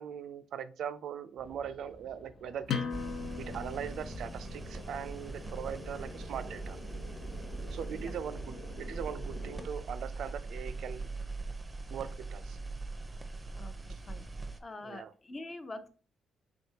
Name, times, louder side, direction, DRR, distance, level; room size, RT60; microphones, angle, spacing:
voice 1, 0.0-2.9 3.4-6.8 7.7-11.1 11.9-12.6 14.8-15.1, right 8 dB, 70° right, 12 dB, 0.3 m, -40 dB
sound 1, 1.4-9.7, left 1 dB, 55° left, 1.2 m, -49 dB
sound 2, 2.7-8.1, left 6 dB, 75° left, 0.6 m, -41 dB
sound 3, 2.9-14.6, right 3 dB, 20° right, 0.5 m, -41 dB
voice 2, 13.6-14.3 14.6-15.9, left 2 dB, 25° left, 10 dB, 0.5 m, -45 dB
3.6 x 3.5 x 2.7 m, 0.39 s
cardioid pair, 90°, 0 cm